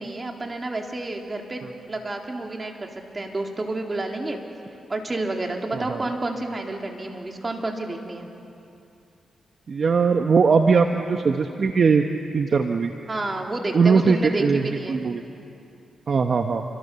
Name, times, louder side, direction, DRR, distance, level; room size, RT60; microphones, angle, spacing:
voice 1, 0.0-4.4 4.9-8.3 13.1-15.0, right 2 dB, 30° right, 2 dB, 3.7 m, -30 dB
voice 2, 9.7-12.0 12.3-12.9 13.7-15.2 16.1-16.6, right 5 dB, 55° right, 5 dB, 1.3 m, -20 dB
28.5 x 25.5 x 7.1 m, 2.6 s
cardioid pair, 60°, 0 cm